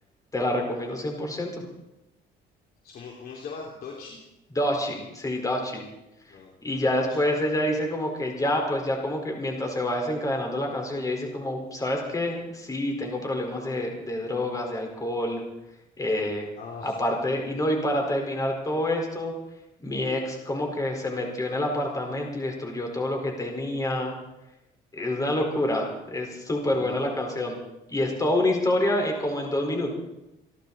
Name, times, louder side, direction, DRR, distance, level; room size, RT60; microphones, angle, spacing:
voice 1, 0.3-1.6 4.5-5.8 6.6-15.4 16.0-16.5 16.8-19.3 19.8-24.1 24.9-27.6 27.9-29.9, left 1 dB, 20° left, 2 dB, 4.8 m, -27 dB
voice 2, 2.8-4.2 6.3-6.5 6.9-7.2 16.6-16.9 26.7-27.0, left 4 dB, 60° left, -1 dB, 3.1 m, -40 dB
29.0 x 11.5 x 4.3 m, 0.91 s
cardioid pair, 110°, 17 cm